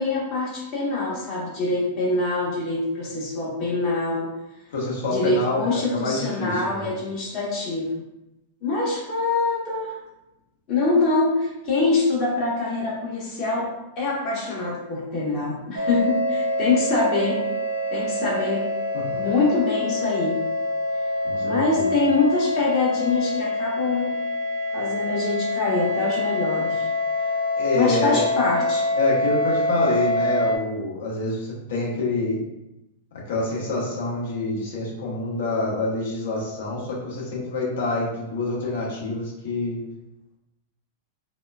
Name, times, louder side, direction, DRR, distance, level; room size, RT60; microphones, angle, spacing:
voice 1, 0.0-4.3 5.1-7.9 8.6-10.0 10.7-13.7 14.0-17.4 17.9-18.6 19.1-20.4 21.4-24.1 24.7-26.9 27.7-28.8, left 3 dB, 45° left, -5 dB, 1.2 m, -24 dB
voice 2, 4.7-6.9 18.9-19.2 21.2-21.9 27.6-28.2 29.0-32.4 33.3-39.8, left 2 dB, 75° left, -4 dB, 1.2 m, -27 dB
sound 1, 15.8-30.6, left 1 dB, 75° right, 0.5 m, -25 dB
4.2 x 2.3 x 2.3 m, 0.92 s
hypercardioid pair, 110°, 0 cm